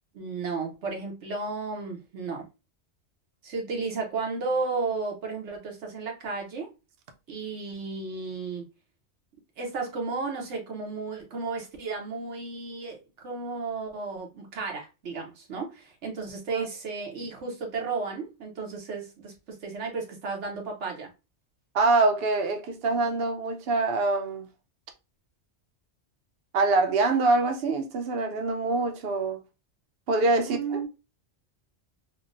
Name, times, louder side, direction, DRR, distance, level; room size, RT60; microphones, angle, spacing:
voice 1, 0.1-2.5 3.4-6.7 7.3-8.7 9.6-21.1 30.4-30.9, right 4 dB, 85° right, 1.2 m, -33 dB
voice 2, 21.7-24.5 26.5-29.4 30.1-30.8, right 3 dB, 65° right, 0.8 m, -25 dB
3.6 x 2.1 x 2.4 m
omnidirectional pair, 1.2 m